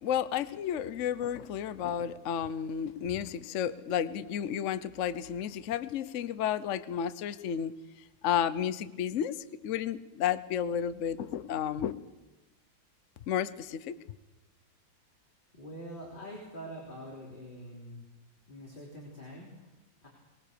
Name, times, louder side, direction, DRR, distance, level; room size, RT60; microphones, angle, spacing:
voice 1, 0.0-7.7 8.2-9.3 9.6-11.9 13.3-13.9, left 9 dB, 55° left, 13 dB, 0.8 m, -32 dB
voice 2, 15.5-18.1 18.5-20.1, equal, 25° left, -2 dB, 3.8 m, -45 dB
23.5 x 19.5 x 6.9 m, 1.1 s
omnidirectional pair, 2.2 m